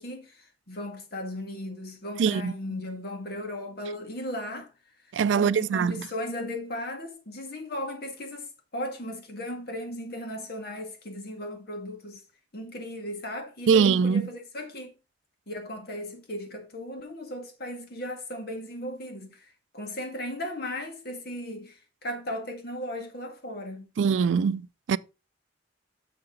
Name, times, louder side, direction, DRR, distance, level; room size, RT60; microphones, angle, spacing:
voice 1, 0.0-4.7 5.3-12.2 12.5-14.9 15.5-19.5 19.7-23.9, left 1 dB, 55° left, 2.0 m, -36 dB
voice 2, 2.2-2.5 5.1-6.0 13.7-14.3 24.0-24.6 24.9-25.0, right 6 dB, 80° right, 0.4 m, -22 dB
6.8 x 6.7 x 3.8 m
head